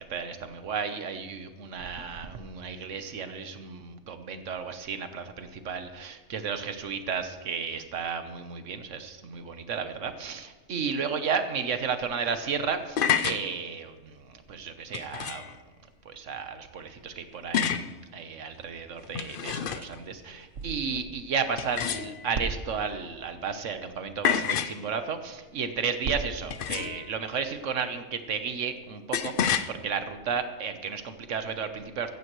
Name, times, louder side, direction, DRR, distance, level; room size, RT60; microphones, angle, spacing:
voice 1, 0.0-13.0 13.2-15.5 16.0-17.8 18.1-29.3 29.7-32.1, right 6 dB, 75° right, 8 dB, 1.4 m, -33 dB
sound 1, 12.7-13.4 14.9-15.5 17.5-17.9 19.0-20.0 21.6-22.4 24.2-24.8 26.5-27.1 29.1-29.7, left 8 dB, 55° left, 0.7 m, -28 dB
15.0 x 14.5 x 3.1 m, 1.3 s
omnidirectional pair, 1.3 m